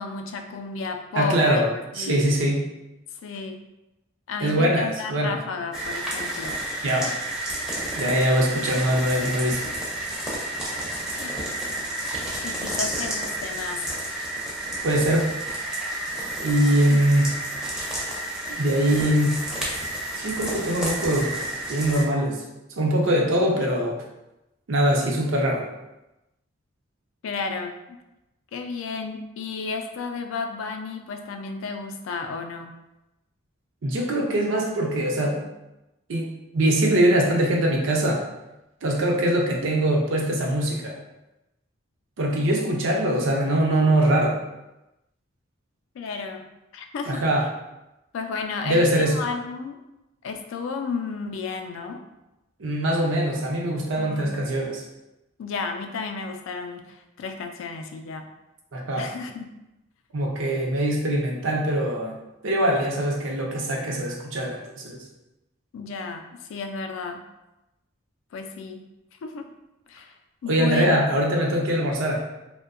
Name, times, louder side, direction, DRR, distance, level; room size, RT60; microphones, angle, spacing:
voice 1, 0.0-2.2 3.2-3.6 4.3-6.6 7.0-7.1 11.1-11.4 12.4-13.9 16.9-17.1 27.2-28.0 28.5-32.7 46.0-46.4 46.7-47.2 48.1-49.8 50.2-52.0 54.0-54.4 55.4-58.3 59.0-59.5 65.7-67.2 68.3-68.8 69.2-69.5 69.9-70.2 70.4-71.1, left 4 dB, 80° left, 5 dB, 0.3 m, -32 dB
voice 2, 1.1-1.6 2.0-2.6 4.4-5.4 6.8-7.1 8.0-9.6 14.8-15.3 16.4-17.3 18.6-19.3 20.2-21.3 21.7-22.4 22.8-23.9 24.7-25.7 33.8-35.4 36.1-36.3 36.5-38.2 38.8-40.9 42.2-44.4 47.1-47.4 48.6-49.1 52.6-54.8 58.7-59.1 60.1-62.1 62.4-65.0 70.5-72.2, right 1 dB, 75° right, -1 dB, 0.5 m, -22 dB
sound 1, 5.7-22.0, right 1 dB, 5° right, 0.4 m, -31 dB
2.6 x 2.1 x 2.4 m, 0.96 s
head